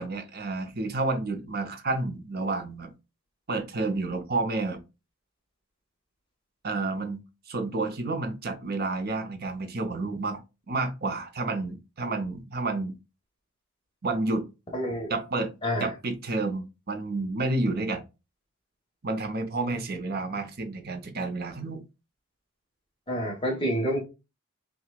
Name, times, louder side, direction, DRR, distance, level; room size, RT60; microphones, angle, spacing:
voice 1, 0.0-2.9 3.5-4.8 6.6-7.2 7.5-10.4 10.7-13.0 14.0-14.5 15.1-15.5 15.8-18.0 19.0-21.8, right 3 dB, 45° right, 0.7 m, -30 dB
voice 2, 14.7-15.1 15.6-15.9 23.1-24.0, equal, 25° left, 1.2 m, -28 dB
5.7 x 2.3 x 2.3 m
head